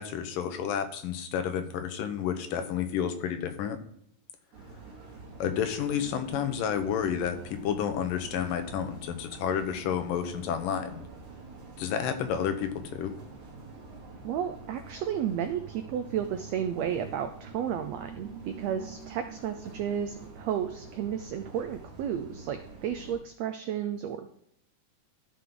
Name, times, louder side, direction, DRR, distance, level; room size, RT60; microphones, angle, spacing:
voice 1, 0.0-3.8 5.4-11.0 11.8-13.1, left 8 dB, 85° left, 7 dB, 2.7 m, -30 dB
sound 1, 4.5-23.2, right 4 dB, 70° right, 3.4 m, -46 dB
voice 2, 14.2-24.3, right 9 dB, 90° right, 8 dB, 1.5 m, -32 dB
13.5 x 5.9 x 3.8 m, 0.74 s
omnidirectional pair, 3.8 m